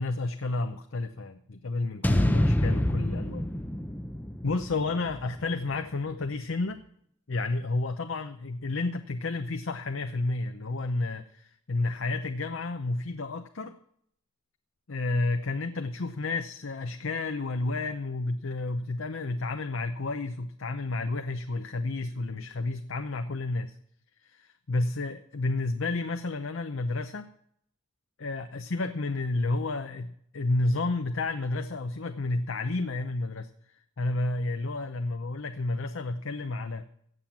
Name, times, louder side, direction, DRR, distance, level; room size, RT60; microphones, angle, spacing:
voice 1, 0.0-3.5 4.4-6.8 7.3-13.8 14.9-23.8 24.2-27.3 28.2-33.5 34.0-36.9, left 2 dB, 75° left, 7 dB, 0.7 m, -31 dB
sound 1, 2.0-6.3, left 1 dB, 10° left, 0.6 m, -28 dB
16.0 x 7.8 x 7.3 m, 0.69 s
head